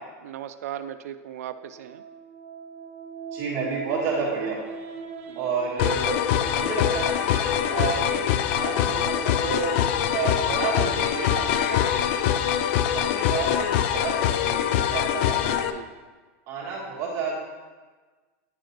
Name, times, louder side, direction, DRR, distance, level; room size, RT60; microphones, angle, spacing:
voice 1, 0.2-2.0 5.2-5.5 15.6-15.9, right 10 dB, 90° right, 10 dB, 0.3 m, -37 dB
sound 1, 1.6-14.5, right 5 dB, 70° right, 0.8 m, -41 dB
voice 2, 3.3-4.6 5.3-6.2 6.5-9.7 10.1-12.1 12.8-15.7 16.5-17.3, right 4 dB, 40° right, -4 dB, 1.4 m, -31 dB
sound 2, 5.8-15.7, left 10 dB, 55° left, 0.3 m, -24 dB
9.3 x 5.0 x 3.0 m, 1.4 s
supercardioid pair, 155°, 8 cm